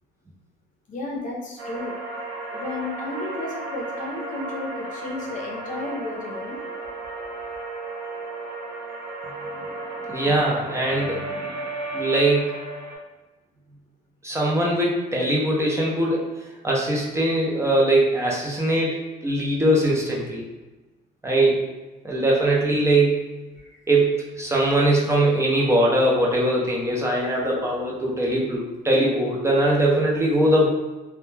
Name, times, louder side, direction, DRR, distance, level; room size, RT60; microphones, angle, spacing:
voice 1, 0.9-2.0 2.5-6.6 23.5-23.8, left 2 dB, 50° left, -1 dB, 0.6 m, -33 dB
sound 1, 1.6-13.0, right 2 dB, 75° right, 0.8 m, -34 dB
voice 2, 10.1-11.5 11.9-12.5 14.2-16.3 16.6-20.4 21.2-21.7 22.0-23.2 23.9-30.7, right 1 dB, 15° right, -3 dB, 0.5 m, -21 dB
2.1 x 2.1 x 3.1 m, 1.2 s
cardioid pair, 110°, 17 cm